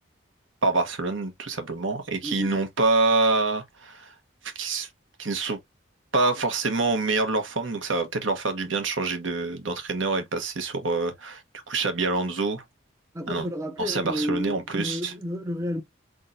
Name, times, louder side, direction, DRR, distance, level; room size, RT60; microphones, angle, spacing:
voice 1, 0.6-4.1 4.5-4.9 5.2-5.6 6.1-11.4 11.7-12.6 13.3-13.5 13.8-15.1, right 3 dB, 80° right, 1.2 m, -26 dB
voice 2, 13.1-15.8, equal, 15° right, 0.5 m, -31 dB
3.8 x 3.7 x 2.6 m
head